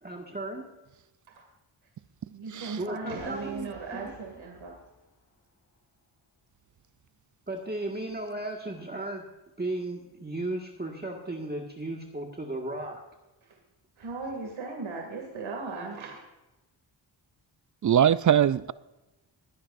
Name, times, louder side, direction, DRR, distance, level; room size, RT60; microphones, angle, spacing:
voice 1, 0.0-0.7 2.8-4.1 7.5-9.2 9.6-13.0, right 2 dB, 20° right, 1.7 m, -35 dB
voice 2, 2.3-4.7 14.0-16.2, right 4 dB, 75° right, 2.5 m, -37 dB
Boom, 3.2-6.0, left 2 dB, 35° left, 4.0 m, -54 dB
voice 3, 17.8-18.7, right 9 dB, 40° right, 0.4 m, -22 dB
20.5 x 10.0 x 2.6 m
cardioid pair, 75°, 48 cm